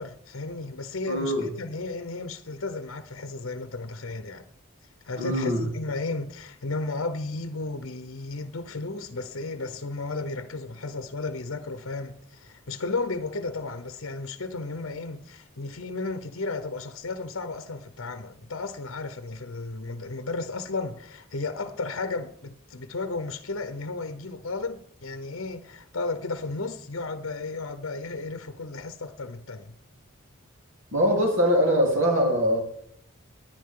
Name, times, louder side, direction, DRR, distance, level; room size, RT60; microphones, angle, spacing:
voice 1, 0.0-4.4 5.0-29.8, left 3 dB, 60° left, 0.8 m, -34 dB
voice 2, 1.1-1.5 5.2-5.6 30.9-32.6, equal, 65° right, 3.5 m, -22 dB
19.0 x 10.0 x 3.8 m
head